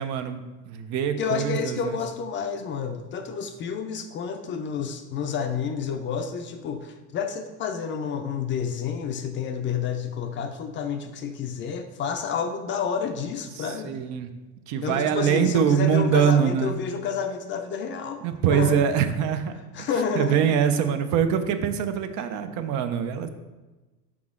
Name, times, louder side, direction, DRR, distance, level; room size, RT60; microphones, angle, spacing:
voice 1, 0.0-1.9 13.6-14.3 14.7-16.8 18.2-19.5 19.8-19.9 20.2-23.3, right 8 dB, 55° right, 9 dB, 0.6 m, -23 dB
voice 2, 1.2-14.0 14.8-18.9 19.7-20.4, left 6 dB, 35° left, 7 dB, 0.4 m, -30 dB
6.0 x 4.8 x 3.6 m, 1.2 s
cardioid pair, 140°, 35 cm